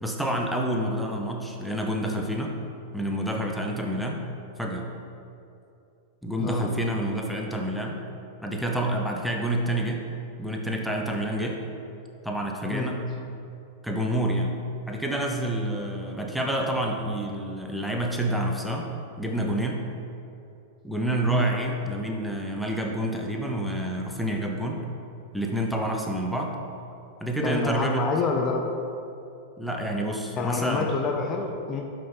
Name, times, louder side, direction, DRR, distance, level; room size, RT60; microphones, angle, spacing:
voice 1, 0.0-2.6 2.9-4.2 4.6-4.9 6.2-8.0 8.4-10.0 10.4-11.6 12.2-13.0 13.8-14.5 14.9-19.8 20.8-24.9 25.3-26.6 27.2-28.1 29.6-30.9, right 1 dB, ahead, 0 dB, 0.9 m, -28 dB
voice 2, 27.4-28.7 30.4-31.9, left 4 dB, 30° left, 3 dB, 0.6 m, -28 dB
5.7 x 5.1 x 5.6 m, 2.7 s
hypercardioid pair, 110°, 0 cm